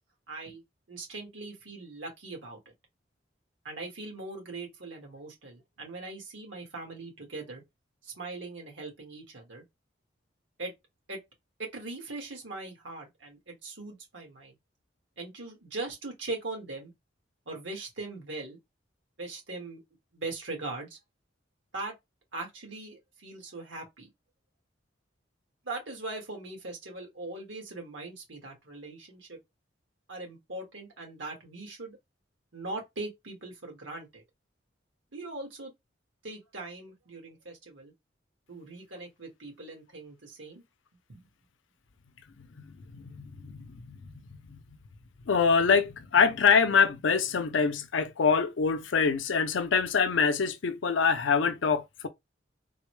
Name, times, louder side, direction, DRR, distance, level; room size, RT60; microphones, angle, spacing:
voice 1, 0.3-0.6 0.9-2.7 3.6-7.6 8.0-9.6 10.6-10.7 11.1-11.2 11.6-14.6 15.2-16.9 17.5-18.6 19.2-19.8 20.1-21.0 21.7-21.9 22.3-24.1 25.6-29.4 30.1-32.0 32.5-34.2 35.1-35.7 36.2-37.9 38.5-40.6 41.1-41.2, right 2 dB, 85° right, 1.7 m, -40 dB
voice 2, 42.6-44.6 45.3-52.1, left 5 dB, 80° left, 0.5 m, -25 dB
3.9 x 2.1 x 3.1 m
head